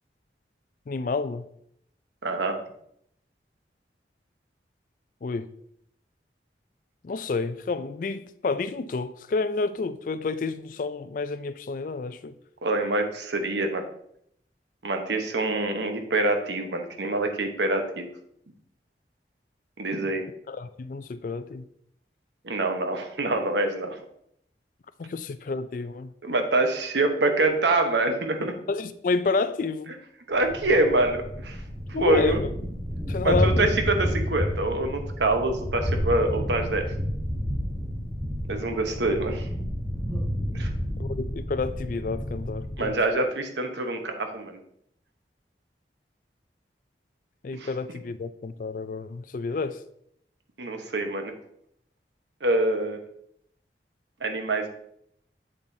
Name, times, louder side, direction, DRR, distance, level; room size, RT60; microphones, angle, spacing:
voice 1, 0.9-1.5 5.2-5.5 7.0-12.3 20.5-21.7 25.0-26.1 28.7-29.9 31.9-32.5 33.1-33.7 41.0-43.0 47.4-49.8, left 4 dB, 45° left, 13 dB, 0.3 m, -29 dB
voice 2, 2.2-2.6 12.6-13.9 14.8-18.1 19.8-20.2 22.4-24.0 26.2-28.5 30.3-31.6 31.9-32.4 33.2-36.9 38.2-39.5 40.5-40.7 42.8-44.6 47.5-47.7 50.6-51.3 52.4-53.0 54.2-54.7, right 2 dB, 80° right, 5 dB, 1.0 m, -25 dB
Thunder, 30.4-43.0, equal, 5° right, 1.2 m, -30 dB
7.8 x 6.9 x 2.7 m, 0.71 s
head